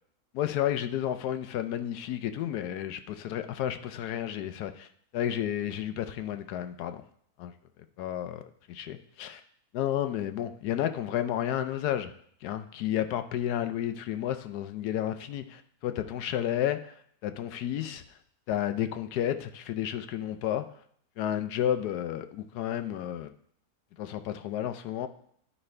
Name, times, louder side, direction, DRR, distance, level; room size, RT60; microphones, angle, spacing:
voice 1, 0.3-4.9 5.1-7.0 7.4-7.5 8.0-8.4 8.7-9.4 9.7-12.1 12.4-17.0 17.2-18.0 18.5-20.7 21.2-23.3 24.0-25.1, left 11 dB, 75° left, 9 dB, 1.1 m, -31 dB
11.0 x 5.4 x 3.2 m, 0.64 s
omnidirectional pair, 1.7 m